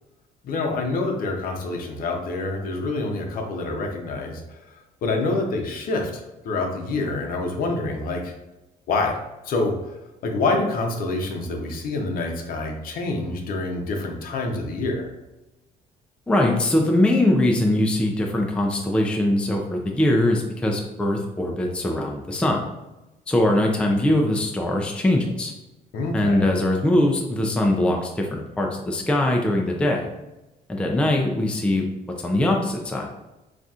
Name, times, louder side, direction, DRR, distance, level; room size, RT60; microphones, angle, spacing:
voice 1, 0.4-4.6 5.0-8.3 8.9-9.2 9.4-9.9 10.2-15.1 25.9-26.5, left 3 dB, 60° left, 2 dB, 0.7 m, -26 dB
voice 2, 16.3-22.7 23.3-25.5 26.1-30.1 30.7-31.8 32.2-33.1, left 1 dB, 5° left, 0 dB, 0.4 m, -22 dB
4.0 x 2.4 x 2.3 m, 0.99 s
cardioid pair, 110°, 17 cm